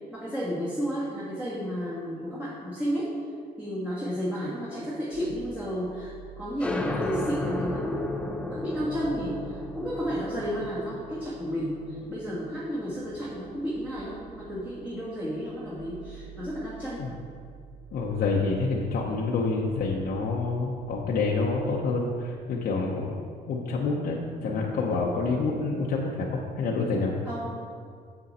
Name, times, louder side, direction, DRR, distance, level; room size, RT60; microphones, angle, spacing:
voice 1, 0.1-3.1 3.6-8.2 8.5-17.1 27.2-27.6, equal, 10° right, -8 dB, 1.6 m, -32 dB
sound 1, 5.1-23.1, right 11 dB, 75° right, 1.1 m, -50 dB
sound 2, 6.6-13.9, left 2 dB, 5° left, 0.5 m, -35 dB
voice 2, 17.9-23.2 23.5-27.2, left 3 dB, 60° left, -3 dB, 0.8 m, -27 dB
7.1 x 6.6 x 4.2 m, 2.2 s
cardioid pair, 110°, 17 cm